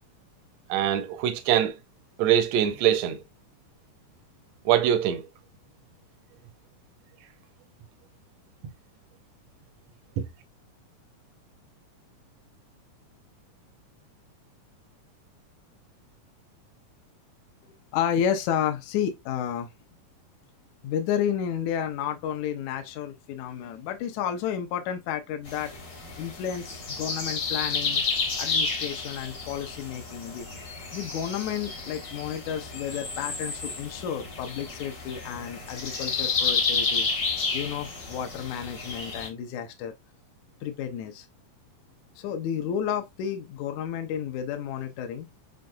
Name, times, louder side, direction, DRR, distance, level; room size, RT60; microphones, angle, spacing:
voice 1, 0.7-1.7 2.2-3.2 4.6-5.3 10.2-10.3, right 10 dB, 80° right, 1.6 m, -23 dB
voice 2, 17.9-19.7 20.8-25.7 26.2-28.0 28.4-30.5 30.9-37.1 37.5-39.9 40.6-41.3 42.2-45.3, left 9 dB, 75° left, 1.8 m, -31 dB
sound 1, 25.5-39.3, left 4 dB, 50° left, 1.3 m, -31 dB
7.6 x 2.6 x 2.2 m
omnidirectional pair, 3.9 m